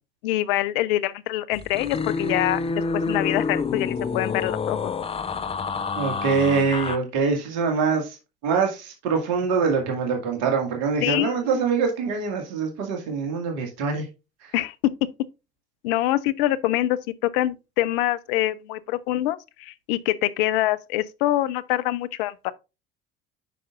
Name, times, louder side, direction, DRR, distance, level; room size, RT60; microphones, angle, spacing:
voice 1, 0.2-4.9 11.0-11.6 14.5-15.1 15.8-22.5, left 15 dB, 65° left, 0.6 m, -25 dB
sound 1, 1.5-7.0, left 4 dB, 20° left, 0.6 m, -28 dB
voice 2, 6.0-8.2 8.4-14.0, right 5 dB, 60° right, 2.0 m, -24 dB
9.2 x 5.7 x 2.5 m
hypercardioid pair, 65°, 29 cm